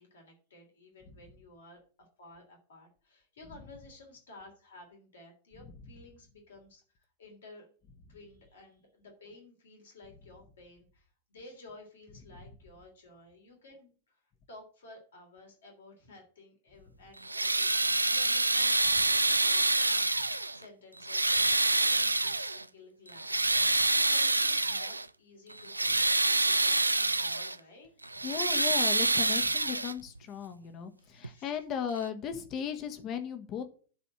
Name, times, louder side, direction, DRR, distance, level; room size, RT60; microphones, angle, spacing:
voice 1, 0.0-7.7 8.1-14.2 14.5-28.3 31.0-31.5, left 2 dB, 65° left, 2 dB, 3.3 m, -54 dB
sound 1, 17.2-20.6 21.0-22.6 23.1-25.1 25.5-27.6 28.0-30.2 31.2-31.3 32.0-32.1, right 2 dB, 85° right, 0.3 m, -27 dB
voice 2, 28.2-33.6, left 8 dB, 35° left, 8 dB, 1.4 m, -36 dB
11.0 x 4.1 x 6.4 m, 0.40 s
figure-of-eight pair, 90°, 0 cm